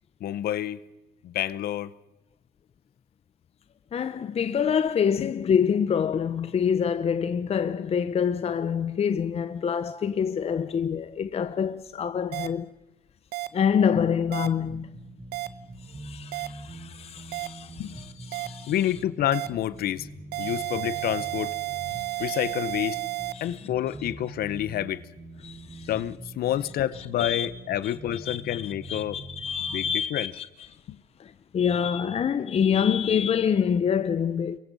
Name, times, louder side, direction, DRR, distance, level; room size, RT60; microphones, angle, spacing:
voice 1, 0.2-0.8 1.2-1.9 5.2-5.3 17.8-18.0 18.7-20.1 20.4-21.5 22.2-23.0 23.4-25.1 25.9-29.2 29.7-30.3 30.9-31.0, left 12 dB, 65° left, 1.0 m, -28 dB
voice 2, 3.9-12.7 13.5-14.9 15.9-18.7 23.3-23.6 25.4-25.9 27.2-27.5 27.8-27.9 28.3-28.6 28.9-30.5 31.2-34.6, left 7 dB, 35° left, 0.8 m, -26 dB
sound 1, 12.3-12.5 13.3-13.5 14.3-14.5 15.3-15.5 16.3-16.5 17.3-17.5 18.3-18.5 19.3-19.5 20.3-23.3, right 19 dB, 70° right, 1.1 m, -31 dB
sound 2, 13.9-29.9, right 2 dB, 20° right, 6.5 m, -44 dB
28.5 x 23.0 x 5.4 m
cardioid pair, 110°, 17 cm